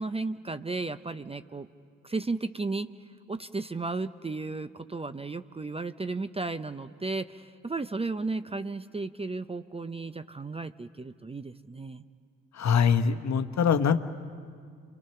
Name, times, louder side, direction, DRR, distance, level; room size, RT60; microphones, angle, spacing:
voice 1, 0.0-1.7 2.0-2.9 3.3-12.0, right 3 dB, 15° right, 12 dB, 0.7 m, -34 dB
voice 2, 12.5-14.0, left 7 dB, 50° left, 7 dB, 1.2 m, -23 dB
30.0 x 24.5 x 5.8 m, 2.1 s
hypercardioid pair, 55°, 36 cm